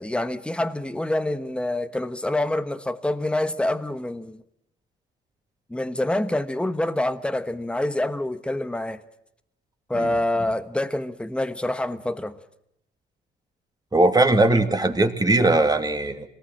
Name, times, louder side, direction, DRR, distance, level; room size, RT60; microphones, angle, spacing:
voice 1, 0.0-4.4 5.7-9.0 9.9-12.4, left 1 dB, 5° left, 1.2 m, -26 dB
voice 2, 13.9-16.3, right 2 dB, 20° right, 2.5 m, -20 dB
25.0 x 19.0 x 7.7 m
cardioid pair, 90°, 20 cm